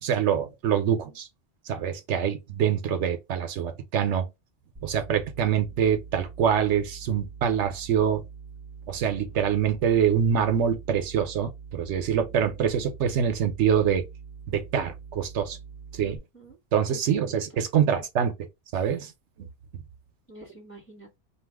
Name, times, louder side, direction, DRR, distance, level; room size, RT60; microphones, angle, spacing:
voice 1, 0.0-1.3 1.7-4.3 4.8-8.2 8.9-14.0 14.5-15.6 15.9-16.2 16.7-18.3 18.7-19.1 19.4-19.5, right 8 dB, 80° right, 0.9 m, -25 dB
sound 1, 4.7-16.2, right 6 dB, 20° right, 0.5 m, -44 dB
voice 2, 16.0-16.6 17.1-17.6 20.3-21.2, right 3 dB, 10° left, 1.4 m, -47 dB
2.7 x 2.4 x 3.4 m
omnidirectional pair, 1.2 m